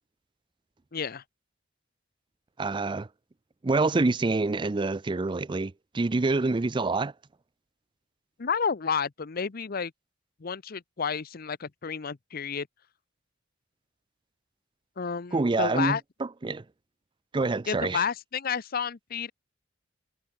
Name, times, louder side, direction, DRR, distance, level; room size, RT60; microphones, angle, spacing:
voice 1, 0.9-1.2 8.4-9.9 10.4-12.7 15.0-16.0 17.7-19.3, left 6 dB, 50° left, 0.7 m, -30 dB
voice 2, 2.6-3.1 3.6-7.1 15.3-16.6 17.3-18.0, right 3 dB, 25° right, 0.5 m, -26 dB
head